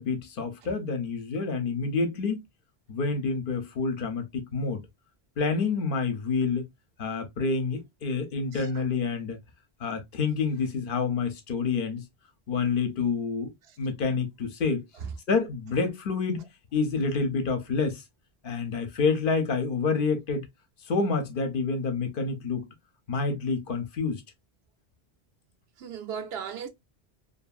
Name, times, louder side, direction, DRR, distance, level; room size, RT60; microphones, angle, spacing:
voice 1, 0.0-2.4 2.9-4.8 5.4-6.7 7.0-9.4 9.8-12.0 12.5-14.8 15.3-16.4 16.7-18.0 18.4-20.5 20.9-22.7 23.1-24.2, left 4 dB, 60° left, 0.8 m, -28 dB
voice 2, 8.5-8.8 25.8-26.7, right 7 dB, 80° right, 0.8 m, -37 dB
2.6 x 2.6 x 2.2 m
omnidirectional pair, 1.1 m